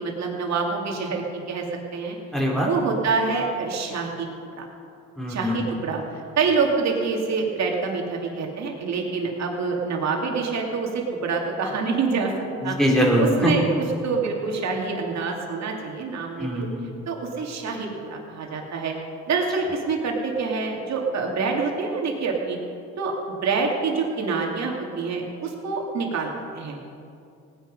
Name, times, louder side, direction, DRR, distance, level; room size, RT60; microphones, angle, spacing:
voice 1, 0.0-1.6 1.9-2.2 2.6-4.3 4.5-4.7 5.3-12.3 12.6-12.8 13.2-16.7 17.1-18.9 19.3-22.6 23.0-26.8, right 4 dB, 60° right, 0 dB, 2.7 m, -26 dB
voice 2, 2.3-2.7 5.2-5.6 12.6-13.5 16.4-16.8, equal, ahead, -2 dB, 3.7 m, -22 dB
18.5 x 9.9 x 5.4 m, 2.5 s
cardioid pair, 90°, 30 cm